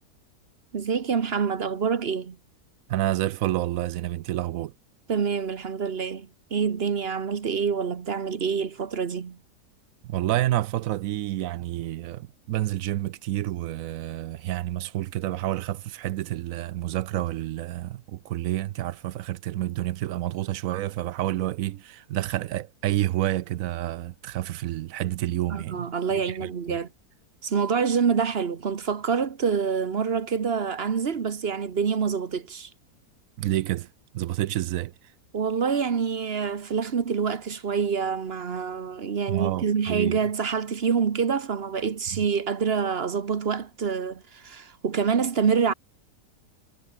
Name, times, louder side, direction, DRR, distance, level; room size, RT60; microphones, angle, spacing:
voice 1, 0.7-2.4 5.1-9.4 25.5-26.9 27.4-32.7 35.3-45.7, right 6 dB, 40° right, 1.2 m, -26 dB
voice 2, 2.9-4.7 10.0-26.8 33.4-33.9 34.1-34.9 39.3-40.2 42.1-42.3, right 14 dB, 70° right, 0.8 m, -29 dB
omnidirectional pair, 1.7 m